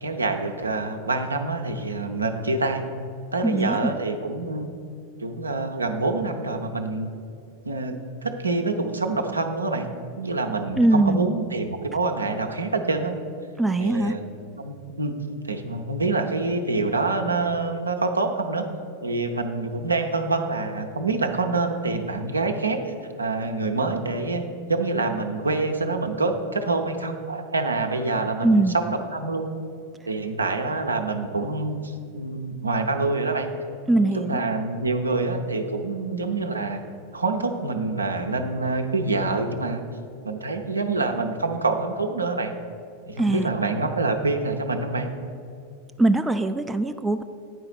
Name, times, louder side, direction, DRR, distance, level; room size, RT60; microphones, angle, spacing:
voice 1, 0.0-2.8 3.3-4.7 5.2-7.1 7.6-9.9 10.2-13.1 13.8-14.2 14.6-15.2 15.4-18.7 19.0-22.8 23.2-24.4 24.7-29.5 30.1-33.5 34.0-36.8 37.1-39.8 40.2-42.5 43.1-45.1, right 3 dB, 80° right, 4 dB, 0.7 m, -26 dB
voice 2, 3.4-3.9 10.8-11.3 13.6-14.1 28.4-28.7 33.9-34.4 43.2-43.5 46.0-47.2, right 2 dB, 10° right, 8 dB, 0.3 m, -21 dB
9.2 x 4.8 x 6.7 m, 2.4 s
figure-of-eight pair, 90°, 0 cm